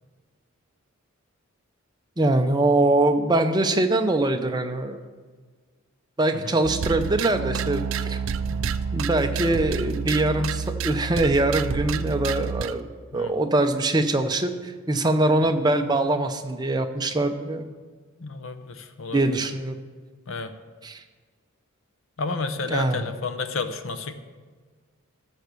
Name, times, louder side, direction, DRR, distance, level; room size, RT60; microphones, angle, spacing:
voice 1, 2.2-5.0 6.2-8.2 8.9-12.9 13.1-17.7 19.1-19.8 20.8-21.0 22.7-23.1, right 2 dB, 20° right, 6 dB, 0.6 m, -23 dB
sound 1, 6.6-12.8, right 6 dB, 65° right, 0.4 m, -29 dB
voice 2, 18.2-19.4 20.3-20.5 22.2-24.1, left 3 dB, 65° left, 9 dB, 0.7 m, -31 dB
13.0 x 4.5 x 6.8 m, 1.5 s
head